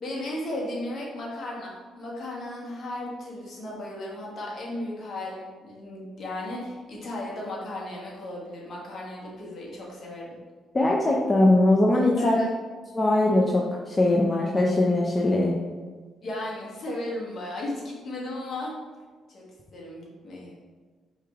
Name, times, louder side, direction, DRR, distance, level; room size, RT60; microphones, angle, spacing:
voice 1, 0.0-10.4 12.2-12.5 16.2-18.8 19.3-19.4 19.7-20.5, left 1 dB, 55° left, -3 dB, 1.3 m, -35 dB
voice 2, 10.7-12.4 12.9-15.5, left 1 dB, 25° left, -2 dB, 0.5 m, -21 dB
4.6 x 3.3 x 3.5 m, 1.4 s
cardioid pair, 90°, 0 cm